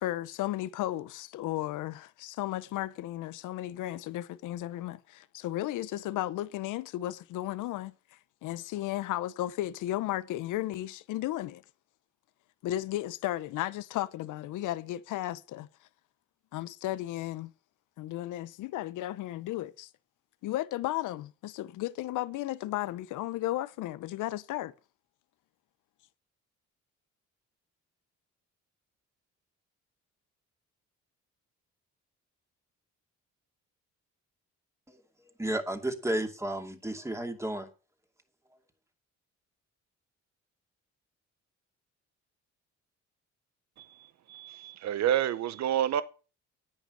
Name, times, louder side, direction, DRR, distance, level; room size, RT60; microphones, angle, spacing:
voice 1, 0.0-7.9 8.4-11.6 12.6-15.7 16.5-17.5 18.0-19.9 20.4-24.7, left 15 dB, 85° left, 0.7 m, -34 dB
voice 2, 35.4-37.7, right 1 dB, 10° right, 2.5 m, -32 dB
voice 3, 43.8-46.0, right 10 dB, 65° right, 0.9 m, -29 dB
10.5 x 9.0 x 6.4 m
cardioid pair, 90°, 30 cm